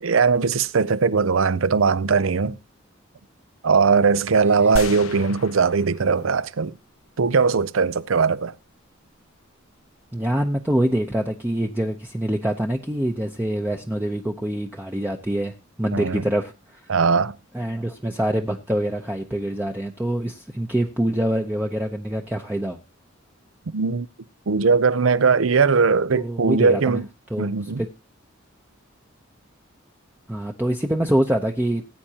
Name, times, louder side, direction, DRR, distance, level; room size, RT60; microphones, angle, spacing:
voice 1, 0.0-2.6 3.6-6.7 7.2-8.5 15.9-16.2 16.9-17.3 23.7-24.1 24.5-27.1 27.4-27.8, right 5 dB, 70° right, 0.6 m, -19 dB
sound 1, 4.8-7.0, left 3 dB, 85° left, 0.8 m, -35 dB
voice 2, 10.1-16.9 17.5-22.8 26.1-27.0 27.3-27.9 30.3-31.8, right 1 dB, 10° right, 0.7 m, -25 dB
19.5 x 8.7 x 2.9 m
head